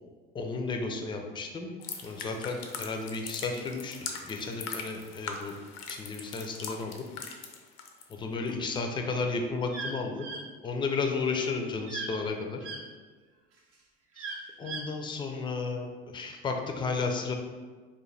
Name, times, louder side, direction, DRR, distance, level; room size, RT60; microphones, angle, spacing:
voice 1, 0.3-1.7 2.0-5.6 5.9-7.0 8.1-10.3 10.6-12.7 14.2-14.3 14.6-17.3, left 4 dB, 15° left, 3 dB, 0.4 m, -33 dB
sound 1, 1.8-8.1 8.5-8.8, left 5 dB, 75° left, 0.5 m, -41 dB
sound 2, 9.7-9.9 10.2-10.4 11.9-12.2 12.6-12.8 14.2-14.8, right 3 dB, 50° right, 0.6 m, -37 dB
2.6 x 2.2 x 3.1 m, 1.5 s
hypercardioid pair, 70°, 30 cm